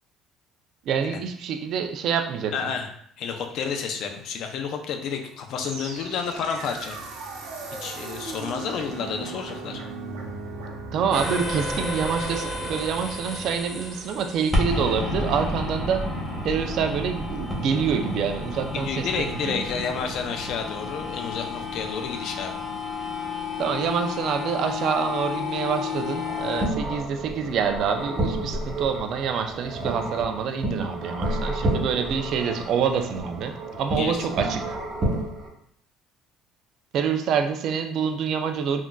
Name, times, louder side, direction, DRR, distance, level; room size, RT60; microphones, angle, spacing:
voice 1, 0.9-2.7 10.9-16.1 16.4-19.8 23.6-34.6 36.9-38.8, right 7 dB, 60° right, 6 dB, 0.4 m, -26 dB
voice 2, 2.5-2.9 3.2-7.0 7.8-9.8 18.7-22.6 33.9-34.3, left 6 dB, 65° left, 5 dB, 0.4 m, -30 dB
sound 1, 5.6-14.7, right 3 dB, 90° right, 0.8 m, -38 dB
sound 2, 11.1-26.7, left 2 dB, ahead, 0.8 m, -31 dB
sound 3, 26.1-35.5, right 1 dB, 35° right, 0.9 m, -30 dB
3.7 x 2.4 x 2.2 m, 0.67 s
cardioid pair, 110°, 0 cm